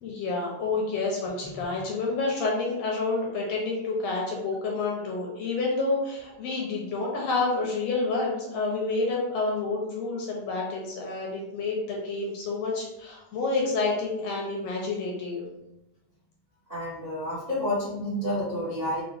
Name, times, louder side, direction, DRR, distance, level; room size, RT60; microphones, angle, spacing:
voice 1, 0.0-15.4, left 3 dB, 75° left, -2 dB, 1.6 m, -29 dB
voice 2, 16.7-19.0, left 1 dB, 80° right, -8 dB, 0.3 m, -30 dB
5.0 x 2.1 x 3.2 m, 0.92 s
omnidirectional pair, 3.3 m